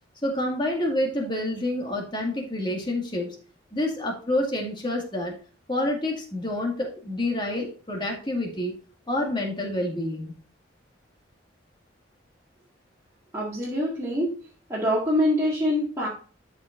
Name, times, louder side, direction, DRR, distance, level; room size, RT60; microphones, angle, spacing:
voice 1, 0.2-3.4 3.7-5.3 5.7-8.7 9.1-10.4, left 1 dB, 25° left, 0 dB, 2.0 m, -28 dB
voice 2, 13.3-14.3 14.7-16.1, equal, 15° right, -7 dB, 1.9 m, -24 dB
12.0 x 5.3 x 2.6 m, 0.41 s
head